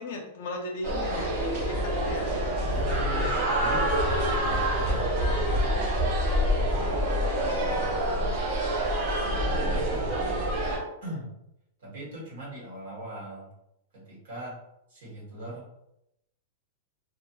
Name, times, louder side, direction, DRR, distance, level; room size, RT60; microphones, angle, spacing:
voice 1, 0.0-2.4, left 2 dB, 50° left, 2 dB, 0.5 m, -36 dB
sound 1, 0.8-10.8, right 1 dB, 35° right, 0.7 m, -26 dB
voice 2, 2.7-3.9 4.3-8.5 9.6-10.6 11.0-11.3 11.8-13.5 13.9-14.6 14.9-15.7, right 1 dB, 60° right, -5 dB, 1.3 m, -40 dB
2.9 x 2.3 x 2.3 m, 0.83 s
supercardioid pair, 175°, 0 cm